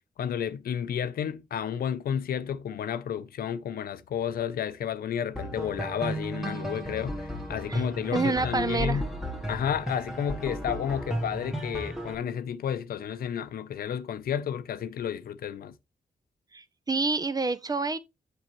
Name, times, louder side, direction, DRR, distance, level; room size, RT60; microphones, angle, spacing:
voice 1, 0.2-9.0 9.5-15.7, left 8 dB, 85° left, 0.6 m, -31 dB
sound 1, 5.3-12.1, right 1 dB, ahead, 1.5 m, -34 dB
voice 2, 8.1-9.0 16.5-18.0, right 3 dB, 25° right, 0.6 m, -28 dB
7.5 x 6.3 x 3.1 m
cardioid pair, 95°, 15 cm